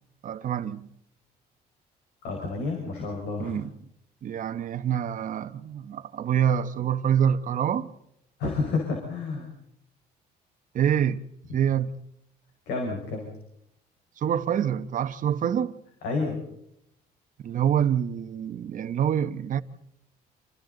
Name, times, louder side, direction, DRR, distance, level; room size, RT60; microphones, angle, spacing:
voice 1, 0.2-0.9 3.4-3.7 4.2-7.9 10.7-11.2 11.5-11.9 14.2-15.8 17.4-19.6, right 9 dB, 50° right, 1.1 m, -26 dB
voice 2, 2.2-3.6 8.4-9.5 12.7-13.3 16.0-16.4, left 3 dB, 85° left, 5.2 m, -30 dB
29.0 x 27.0 x 4.0 m
cardioid pair, 110°, 17 cm